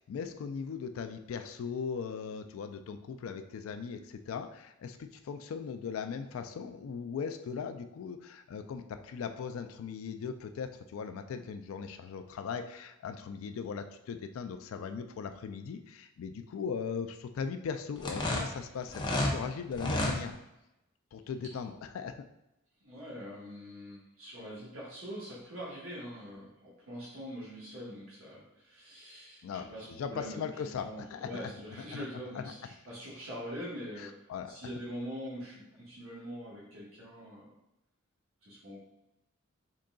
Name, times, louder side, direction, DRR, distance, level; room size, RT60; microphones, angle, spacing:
voice 1, 0.0-20.4 21.1-22.3 29.4-31.5 31.9-32.0 32.4-32.5 34.0-34.6, left 6 dB, 85° left, 9 dB, 0.3 m, -39 dB
sound 1, 18.0-19.3 19.7-20.2, left 1 dB, 20° left, 0.5 m, -30 dB
voice 2, 22.8-37.5 38.4-38.8, equal, 85° right, -6 dB, 1.1 m, -44 dB
3.8 x 3.7 x 2.3 m, 0.91 s
head